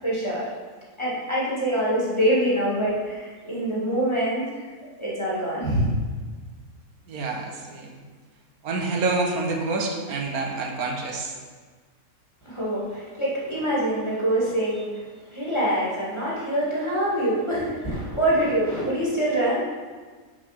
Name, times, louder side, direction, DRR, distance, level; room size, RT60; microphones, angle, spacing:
voice 1, 0.0-0.4 1.0-4.4 5.0-5.9 12.5-14.9 15.3-19.6, right 1 dB, 20° left, -7 dB, 2.0 m, -25 dB
voice 2, 7.1-8.0 8.6-11.3, right 3 dB, 85° right, 2 dB, 1.4 m, -27 dB
6.6 x 4.5 x 5.9 m, 1.5 s
omnidirectional pair, 1.5 m